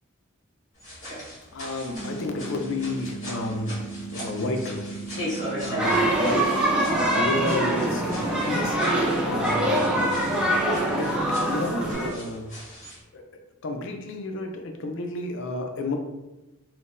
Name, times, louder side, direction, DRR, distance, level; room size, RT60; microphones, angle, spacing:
sound 1, 0.8-13.0, equal, 35° left, 1.4 m, -39 dB
voice 1, 1.5-3.8 4.1-4.9 5.6-8.8 9.2-11.1 11.5-12.5 13.1-13.2 13.6-15.9, left 2 dB, 65° left, 4 dB, 0.5 m, -32 dB
sound 2, 1.9-11.9, right 4 dB, 70° right, 0.9 m, -37 dB
sound 3, 5.8-12.1, right 1 dB, 5° right, 0.5 m, -24 dB
3.8 x 2.1 x 2.5 m, 1.0 s
head